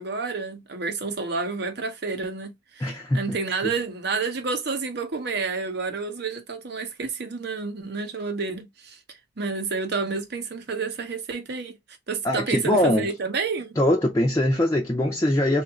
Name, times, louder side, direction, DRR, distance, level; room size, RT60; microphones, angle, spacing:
voice 1, 0.0-9.0 9.4-11.8 12.1-13.8, right 4 dB, 60° right, 0.7 m, -29 dB
voice 2, 2.8-3.4 3.6-3.7 12.2-13.1 13.8-15.6, left 1 dB, 15° left, 0.4 m, -22 dB
3.0 x 2.4 x 3.1 m
head